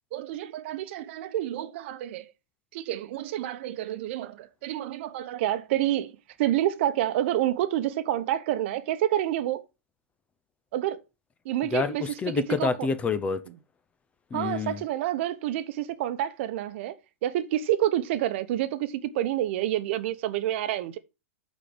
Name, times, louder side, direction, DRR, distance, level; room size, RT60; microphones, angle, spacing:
voice 1, 0.1-2.3 2.7-6.1 6.4-9.6 10.7-11.0 11.4-12.0 12.6-12.7 14.3-17.0 17.2-21.0, right 13 dB, 55° right, 0.9 m, -28 dB
voice 2, 11.7-13.4 14.3-14.8, left 5 dB, 15° left, 0.6 m, -28 dB
8.6 x 4.3 x 5.0 m
hypercardioid pair, 140°, 8 cm